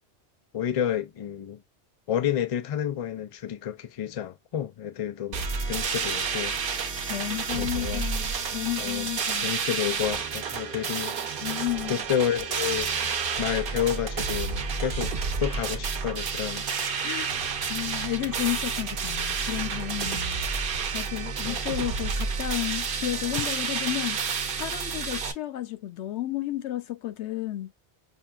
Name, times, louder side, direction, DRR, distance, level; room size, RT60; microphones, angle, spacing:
voice 1, 0.5-1.6 2.1-6.5 7.5-8.1 8.8-11.1 11.9-12.9 13.4-16.7 21.5-21.6, left 10 dB, 45° left, 0.5 m, -30 dB
sound 1, 5.3-25.3, right 5 dB, 55° right, 0.8 m, -30 dB
voice 2, 7.1-9.5 11.4-12.0 17.0-17.3 17.7-20.4 20.9-24.2 24.5-27.7, left 14 dB, 85° left, 0.9 m, -32 dB
5.5 x 2.3 x 2.3 m
omnidirectional pair, 1.1 m